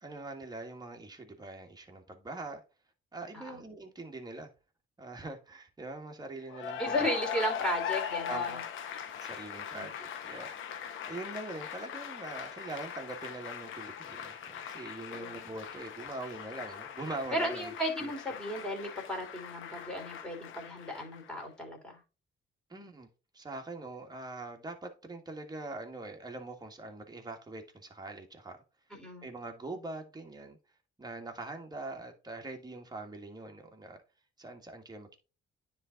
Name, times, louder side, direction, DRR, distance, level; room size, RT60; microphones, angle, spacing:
voice 1, 0.0-2.6 3.1-4.5 5.0-7.1 8.3-8.6 9.1-17.7 18.0-18.1 22.7-23.1 23.3-28.6 29.2-30.6 31.0-34.0 34.4-35.1, right 2 dB, 20° right, 1.7 m, -43 dB
Cheering / Applause, 6.5-21.4, left 8 dB, 80° left, 1.0 m, -40 dB
voice 2, 6.8-8.6 9.7-9.9 15.1-15.4 17.3-22.0 28.9-29.3, equal, 5° left, 3.0 m, -35 dB
9.8 x 3.5 x 3.8 m
cardioid pair, 90°, 20 cm